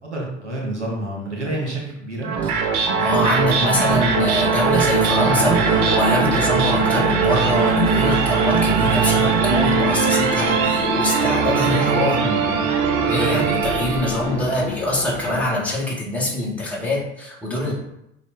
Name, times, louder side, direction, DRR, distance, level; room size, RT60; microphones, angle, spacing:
voice 1, 0.0-2.3 11.6-12.7 12.9-13.5 17.7-17.8, right 1 dB, 85° right, -4 dB, 2.0 m, -29 dB
sound 1, 2.2-14.5, right 6 dB, 55° right, 1.1 m, -20 dB
voice 2, 3.0-12.2 13.0-17.7, left 1 dB, 5° left, -5 dB, 2.4 m, -24 dB
sound 2, 4.1-15.4, left 4 dB, 30° left, 1.0 m, -30 dB
5.7 x 4.0 x 4.5 m, 0.81 s
figure-of-eight pair, 65°, 34 cm